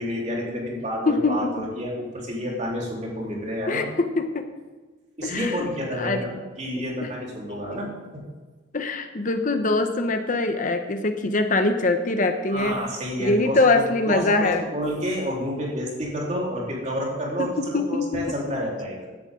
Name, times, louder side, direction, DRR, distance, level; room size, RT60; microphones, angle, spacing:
voice 1, 0.0-3.8 5.2-8.2 12.5-19.1, equal, 40° right, -3 dB, 3.8 m, -29 dB
voice 2, 1.1-1.7 3.7-4.5 5.2-5.7 5.9-6.2 6.8-7.1 8.7-12.8 13.2-14.7 17.4-18.6, left 3 dB, 45° left, 7 dB, 1.0 m, -23 dB
16.0 x 11.0 x 3.8 m, 1.3 s
head